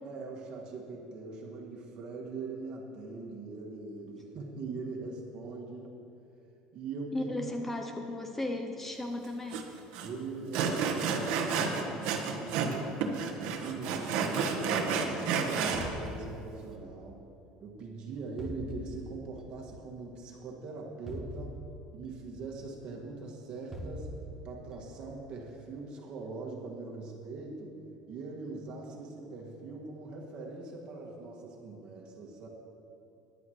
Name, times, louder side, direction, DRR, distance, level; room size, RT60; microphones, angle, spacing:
voice 1, 0.0-5.9 6.7-7.3 10.0-17.2 17.6-21.6 21.9-24.1 24.4-27.8 28.1-32.5, right 3 dB, 45° right, 0 dB, 1.9 m, -41 dB
voice 2, 7.1-9.7, left 1 dB, 10° left, 4 dB, 0.6 m, -35 dB
Sawing, 9.5-9.6 9.9-10.1 10.5-12.8 13.0-15.8, right 6 dB, 70° right, 1.2 m, -30 dB
sound 1, 15.7-16.9 18.4-19.3 21.1-22.1 23.7-24.7, equal, 15° right, 1.0 m, -42 dB
15.0 x 11.0 x 3.1 m, 2.7 s
cardioid pair, 150°, 2 cm